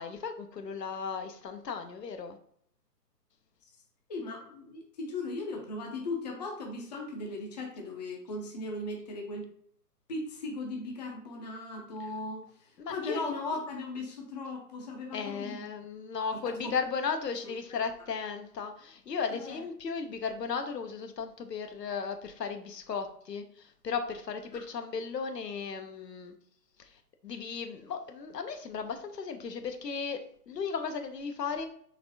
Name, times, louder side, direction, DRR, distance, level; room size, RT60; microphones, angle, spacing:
voice 1, 0.0-2.4 12.8-13.3 15.1-26.3 26.8-26.9 27.2-30.2 30.5-31.7, left 5 dB, 80° left, 6 dB, 0.7 m, -35 dB
voice 2, 4.1-9.4 10.1-15.6 16.4-16.7 19.3-19.6 24.5-24.6, left 2 dB, 25° left, 1 dB, 0.6 m, -38 dB
4.1 x 3.3 x 2.6 m, 0.64 s
figure-of-eight pair, 135°, 48 cm